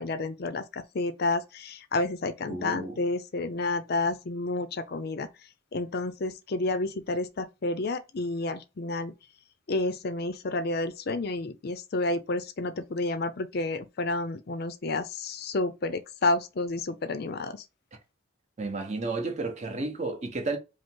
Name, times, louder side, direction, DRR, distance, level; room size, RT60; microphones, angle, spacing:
voice 1, 0.0-5.3 5.7-9.1 9.7-17.6, left 2 dB, 55° left, 0.5 m, -30 dB
voice 2, 2.5-3.0 18.6-20.6, right 3 dB, 35° right, 0.9 m, -32 dB
5.1 x 2.0 x 3.8 m
head